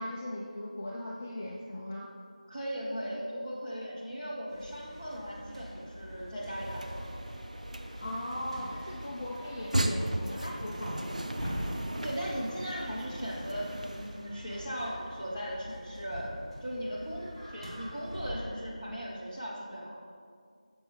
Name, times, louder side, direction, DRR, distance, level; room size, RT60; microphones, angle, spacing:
voice 1, 0.0-2.1 8.0-11.3, left 1 dB, 20° left, -3 dB, 0.4 m, -38 dB
voice 2, 2.5-7.0 12.0-16.4 16.6-20.0, equal, 10° right, -9 dB, 1.1 m, -38 dB
sound 1, 4.5-18.4, equal, 50° right, 2.3 m, -44 dB
sound 2, 6.4-14.3, right 1 dB, 65° right, 0.7 m, -37 dB
12.0 x 6.9 x 3.3 m, 2.2 s
figure-of-eight pair, 170°, 4 cm